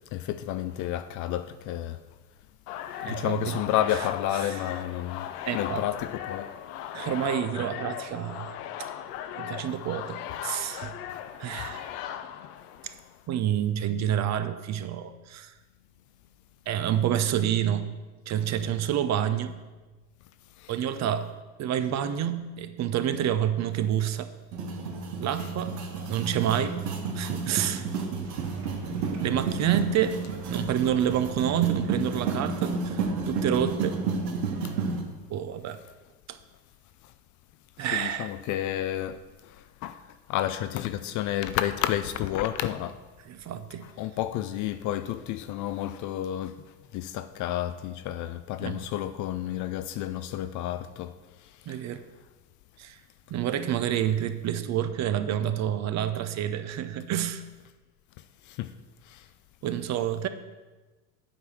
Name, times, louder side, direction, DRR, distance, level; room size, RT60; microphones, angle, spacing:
voice 1, 0.1-2.0 3.0-6.5 11.1-11.2 11.6-11.7 20.6-20.8 25.4-25.5 37.9-40.0 40.3-43.0 43.8-46.6 46.9-51.2 51.4-51.8 58.5-58.7 59.1-59.3, left 12 dB, 40° left, 0.4 m, -31 dB
sound 1, 2.7-13.1, left 10 dB, 70° left, 0.8 m, -38 dB
voice 2, 3.0-3.3 5.4-5.8 6.9-8.9 9.4-10.9 11.4-11.9 12.8-12.9 13.3-15.5 16.7-17.9 18.3-19.6 20.7-21.3 21.6-24.3 25.2-25.8 26.1-26.8 27.1-27.9 28.4-28.5 29.2-30.1 30.5-33.0 33.3-34.0 35.3-35.8 36.3-36.4 37.8-38.3 43.3-43.8 48.6-48.8 51.7-52.0 52.8-53.0 53.3-57.4 59.6-60.3, right 10 dB, 35° right, 0.6 m, -28 dB
sound 2, 24.5-35.0, right 4 dB, 75° right, 1.5 m, -31 dB
sound 3, 28.2-34.6, right 2 dB, 55° right, 3.0 m, -50 dB
8.8 x 4.7 x 6.8 m
hypercardioid pair, 80°, 49 cm